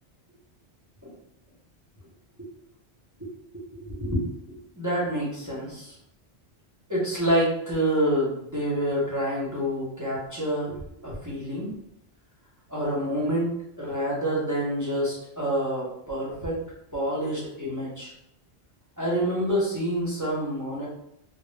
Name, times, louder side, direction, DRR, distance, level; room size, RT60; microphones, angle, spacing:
voice 1, 3.5-6.0 6.9-11.7 12.7-16.6 16.9-18.1 19.0-20.9, equal, 25° right, -7 dB, 0.5 m, -28 dB
2.1 x 2.0 x 3.1 m, 0.78 s
omnidirectional pair, 1.1 m